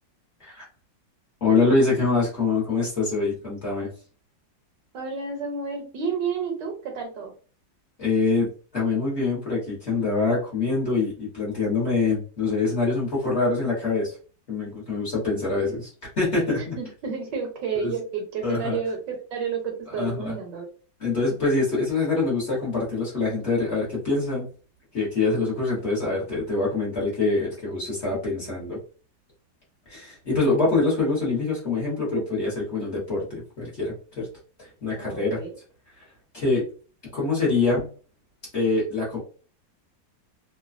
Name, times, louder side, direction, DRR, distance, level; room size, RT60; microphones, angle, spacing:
voice 1, 1.4-3.9 8.0-8.5 8.7-14.2 14.5-15.9 16.2-16.8 17.7-17.9 18.4-18.8 19.9-20.3 21.0-24.5 24.9-28.8 29.9-34.3 34.6-35.4 36.0-36.1 36.3-36.6 37.1-37.9 38.5-39.2, left 3 dB, 45° left, -6 dB, 1.1 m, -25 dB
voice 2, 4.9-7.3 16.8-20.6 34.9-35.5, right 5 dB, 75° right, 3 dB, 1.3 m, -31 dB
3.1 x 2.2 x 2.4 m, 0.39 s
omnidirectional pair, 2.1 m